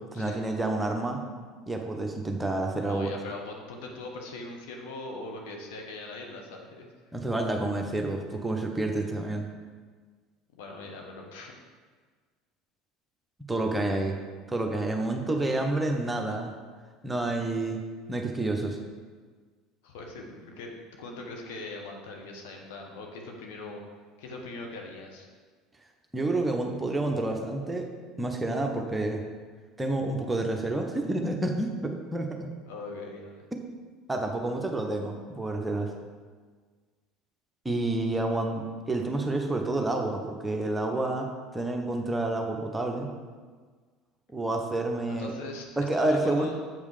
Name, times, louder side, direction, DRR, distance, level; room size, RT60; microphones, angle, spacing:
voice 1, 0.1-1.2 1.7-3.1 7.1-9.5 13.5-14.2 14.5-16.5 17.0-17.8 18.1-18.8 26.1-27.9 28.2-29.2 29.8-32.5 33.5-33.6 34.1-35.9 37.6-43.1 44.3-45.3 45.8-46.5, right 2 dB, 10° right, 2 dB, 1.0 m, -29 dB
voice 2, 2.8-6.9 10.6-11.5 13.8-14.2 17.5-17.6 19.8-20.7 21.0-23.8 24.2-25.3 32.7-33.5 45.1-46.6, left 2 dB, 65° left, 1 dB, 1.2 m, -41 dB
7.5 x 5.3 x 5.0 m, 1.5 s
figure-of-eight pair, 65°, 0 cm